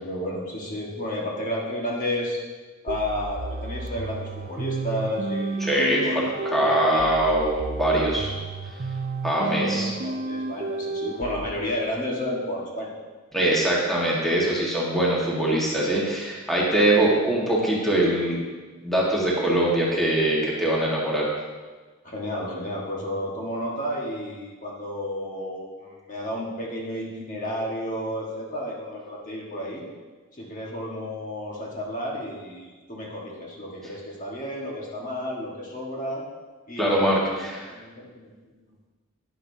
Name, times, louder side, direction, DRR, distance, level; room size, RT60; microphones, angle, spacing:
voice 1, 0.0-2.4 2.8-5.7 6.0-7.2 9.3-12.9 18.0-18.1 22.0-29.8 30.3-36.2 36.7-37.4 37.7-38.5, left 1 dB, 40° left, -3 dB, 1.6 m, -32 dB
sound 1, 2.9-11.5, right 3 dB, 45° right, 0.4 m, -32 dB
voice 2, 5.7-8.3 9.2-9.9 13.3-18.4 18.8-21.3 36.8-37.7, right 1 dB, ahead, -5 dB, 1.6 m, -22 dB
11.0 x 10.5 x 2.8 m, 1.3 s
head